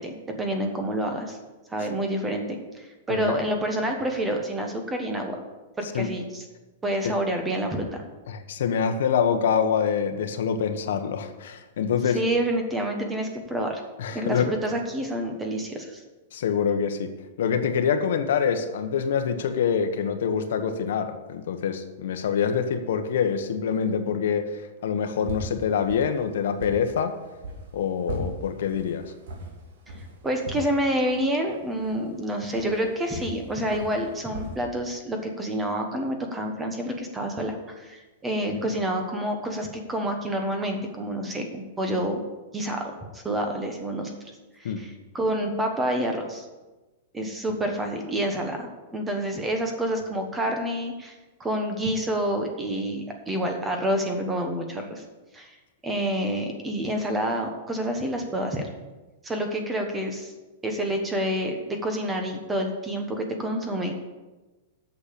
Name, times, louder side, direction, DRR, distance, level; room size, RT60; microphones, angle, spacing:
voice 1, 0.0-1.4 1.7-5.4 5.8-6.4 6.8-8.0 12.1-13.8 14.1-16.0 30.2-42.2 42.5-44.1 44.6-46.5 47.1-55.0 55.3-55.5 55.8-58.7 59.2-60.3 60.6-64.0, right 1 dB, 10° right, 4 dB, 1.2 m, -28 dB
voice 2, 8.3-12.2 14.0-14.5 16.3-17.1 17.4-27.2 27.7-29.0 44.6-44.9, left 7 dB, 70° left, 7 dB, 1.1 m, -25 dB
sound 1, 25.0-34.6, right 1 dB, 65° right, 2.7 m, -39 dB
8.3 x 6.8 x 8.5 m, 1.2 s
supercardioid pair, 165°, 0 cm